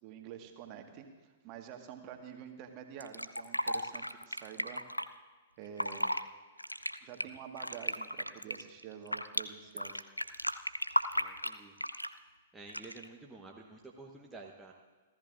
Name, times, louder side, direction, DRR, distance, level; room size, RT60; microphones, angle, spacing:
voice 1, 0.0-4.8 5.6-6.1 7.0-10.0, right 8 dB, 35° right, 4 dB, 1.7 m, -48 dB
Fill (with liquid), 3.0-5.0 5.6-6.2 6.6-9.4 9.8-12.2 12.7-13.1, equal, 90° left, 0.5 m, -34 dB
voice 2, 11.1-11.7 12.5-14.7, right 3 dB, 5° right, -1 dB, 1.1 m, -50 dB
29.0 x 13.5 x 2.6 m, 1.4 s
figure-of-eight pair, 110°, 0 cm